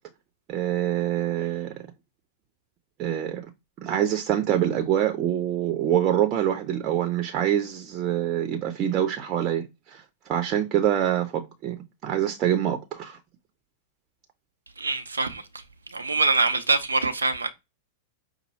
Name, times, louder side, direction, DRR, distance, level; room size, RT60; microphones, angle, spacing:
voice 1, 0.5-1.7 3.0-3.5 3.8-10.0 10.3-13.2, right 10 dB, 40° right, 0.8 m, -25 dB
voice 2, 14.8-15.4 15.9-17.5, right 3 dB, 85° right, 0.6 m, -24 dB
5.4 x 2.2 x 4.2 m
hypercardioid pair, 100°, 0 cm